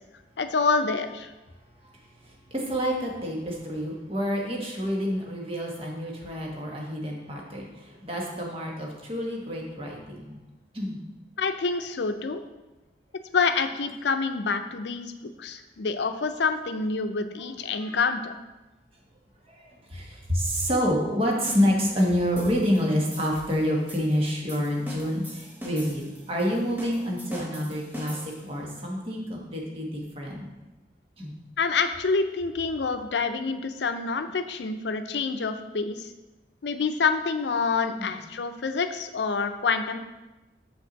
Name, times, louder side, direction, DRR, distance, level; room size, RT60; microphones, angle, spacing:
voice 1, 0.4-1.3 11.4-12.4 13.3-15.1 15.4-18.3 31.6-36.1 36.6-40.0, left 4 dB, 80° left, 8 dB, 0.5 m, -27 dB
voice 2, 2.2-10.3 10.7-11.0 17.4-18.0 19.5-30.4 31.2-31.3 37.9-38.1, equal, 30° right, -1 dB, 1.3 m, -28 dB
sound 1, 21.5-28.6, left 1 dB, 10° right, 0.9 m, -43 dB
6.5 x 5.9 x 4.0 m, 1.1 s
head